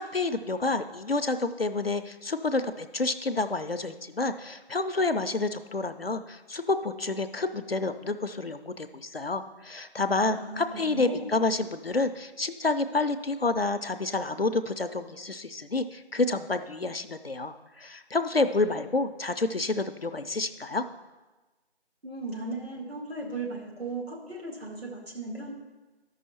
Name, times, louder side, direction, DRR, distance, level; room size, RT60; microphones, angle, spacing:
voice 1, 0.0-20.8, left 3 dB, 60° left, 9 dB, 0.5 m, -29 dB
voice 2, 10.3-11.3 22.0-25.5, right 2 dB, 60° right, -1 dB, 2.1 m, -36 dB
13.5 x 5.5 x 4.3 m, 1.2 s
figure-of-eight pair, 180°, 34 cm